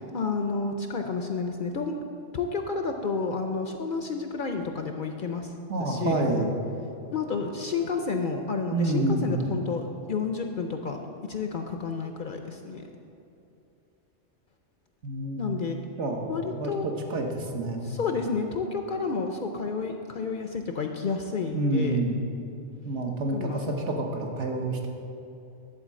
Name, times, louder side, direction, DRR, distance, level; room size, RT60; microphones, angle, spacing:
voice 1, 0.0-2.0 2.3-5.5 5.8-6.3 7.1-11.0 11.3-12.9 15.4-15.8 16.3-16.9 17.9-22.0 23.3-23.8, left 4 dB, 55° left, 4 dB, 0.6 m, -30 dB
voice 2, 5.7-6.6 8.7-9.4 15.0-15.5 16.0-17.9 21.5-22.2 22.8-24.9, right 2 dB, 70° right, 2 dB, 1.3 m, -28 dB
10.5 x 4.5 x 7.4 m, 2.7 s
omnidirectional pair, 1.2 m